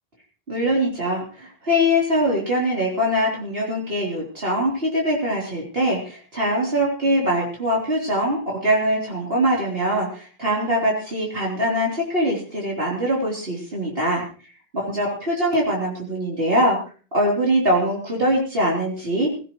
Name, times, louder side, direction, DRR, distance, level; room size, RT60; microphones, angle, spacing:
voice 1, 0.5-14.2 14.7-16.8 17.1-19.3, equal, 70° right, -3 dB, 3.9 m, -22 dB
18.0 x 16.5 x 3.1 m, 0.38 s
omnidirectional pair, 1.0 m